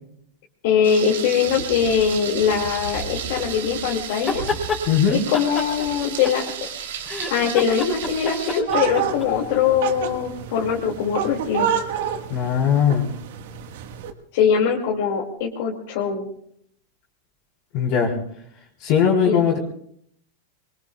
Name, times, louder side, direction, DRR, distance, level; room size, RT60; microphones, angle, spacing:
voice 1, 0.6-4.4 5.1-6.4 7.3-11.7 14.3-16.3 19.2-19.4, left 7 dB, 60° left, -2 dB, 2.5 m, -22 dB
Thunder, 0.8-8.6, right 7 dB, 90° right, 3.3 m, -33 dB
sound 1, 4.1-4.8 5.3-6.7 7.0-9.3, left 4 dB, 15° left, 3.9 m, -28 dB
voice 2, 4.9-5.2 12.3-13.0 17.7-18.1 18.8-19.6, left 7 dB, 45° left, -4 dB, 3.8 m, -19 dB
sound 2, 8.7-14.1, right 8 dB, 70° right, 1.7 m, -28 dB
25.5 x 23.0 x 2.4 m, 0.68 s
supercardioid pair, 160°, 0 cm